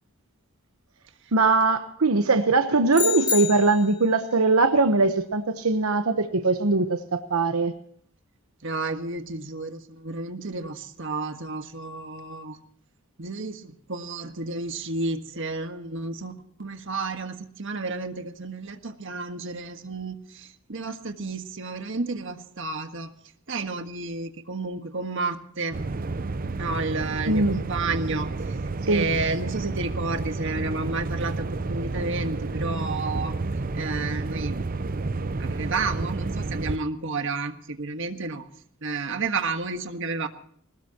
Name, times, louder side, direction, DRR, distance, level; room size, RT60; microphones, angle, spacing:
voice 1, 1.3-7.7 27.3-27.6 28.9-29.1, right 3 dB, 85° right, 1.1 m, -21 dB
sound 1, 2.9-4.0, left 7 dB, 20° left, 2.0 m, -28 dB
voice 2, 8.6-12.6 13.2-16.3 16.6-23.1 23.5-25.8 26.6-28.5 28.9-33.4 33.7-34.6 35.4-38.5 38.8-40.3, right 3 dB, 60° right, 1.6 m, -31 dB
sound 2, 25.7-36.8, right 3 dB, 40° right, 0.6 m, -30 dB
21.0 x 19.5 x 3.0 m
head